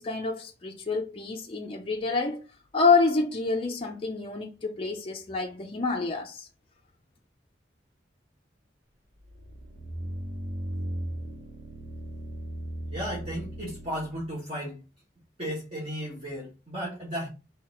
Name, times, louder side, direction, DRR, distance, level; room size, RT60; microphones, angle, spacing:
voice 1, 0.0-2.4 2.7-6.5, left 4 dB, 30° left, 0.5 m, -27 dB
sound 1, 9.2-14.3, right 1 dB, 90° right, 0.9 m, -37 dB
voice 2, 12.9-14.8 15.4-17.3, equal, 30° right, 1.5 m, -34 dB
4.0 x 2.8 x 4.1 m
head